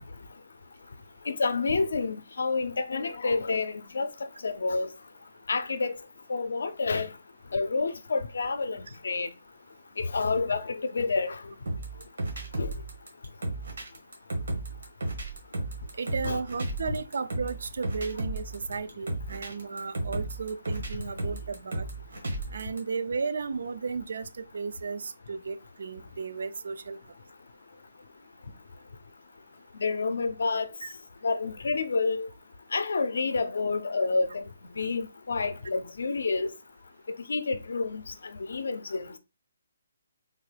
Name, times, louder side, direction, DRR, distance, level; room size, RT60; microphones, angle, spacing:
voice 1, 1.3-4.1 4.4-4.9 5.5-6.0 6.3-7.1 7.5-9.3 10.0-11.4 12.6-12.7 16.2-16.4 20.9-21.0 29.8-30.7 31.2-32.3 32.7-34.4 34.8-36.5 37.3-38.0 38.5-39.1, left 4 dB, 70° left, 0.4 m, -28 dB
sound 1, 11.7-22.8, right 2 dB, 75° right, 1.3 m, -34 dB
voice 2, 15.9-21.9 22.5-27.0 30.8-30.9, right 5 dB, 60° right, 0.3 m, -34 dB
3.6 x 2.2 x 3.2 m
hypercardioid pair, 170°, 0 cm